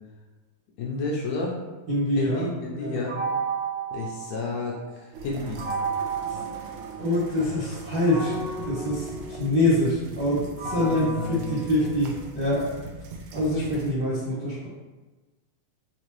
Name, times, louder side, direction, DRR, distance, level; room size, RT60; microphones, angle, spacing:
voice 1, 0.8-1.5 2.2-3.2 3.9-5.6 10.7-11.6, left 3 dB, 75° left, -3 dB, 1.7 m, -31 dB
voice 2, 1.9-2.5 2.7-3.0 7.0-8.4 8.6-12.1 12.3-12.6 13.3-14.7, left 1 dB, 65° right, -10 dB, 1.0 m, -25 dB
sound 1, 3.1-4.9 5.6-7.4 8.1-12.3, right 4 dB, 50° right, 0.7 m, -33 dB
sound 2, 5.1-13.9, right 3 dB, 85° right, 2.0 m, -40 dB
5.3 x 2.9 x 3.0 m, 1.2 s
omnidirectional pair, 3.5 m